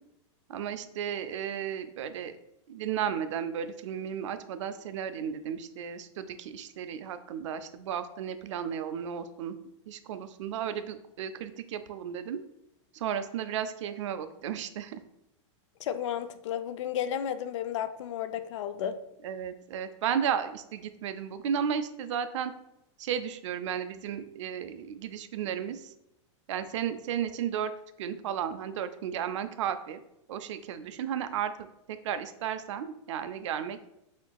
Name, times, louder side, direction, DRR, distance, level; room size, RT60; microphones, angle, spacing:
voice 1, 0.5-2.3 2.7-9.5 9.9-12.4 12.9-15.0 19.2-22.5 23.0-25.9 26.5-27.7 28.0-30.0 30.3-33.8, right 8 dB, 75° right, 11 dB, 0.4 m, -34 dB
voice 2, 15.8-19.0, left 9 dB, 75° left, 12 dB, 0.4 m, -33 dB
4.3 x 3.8 x 2.3 m, 0.83 s
supercardioid pair, 155°, 16 cm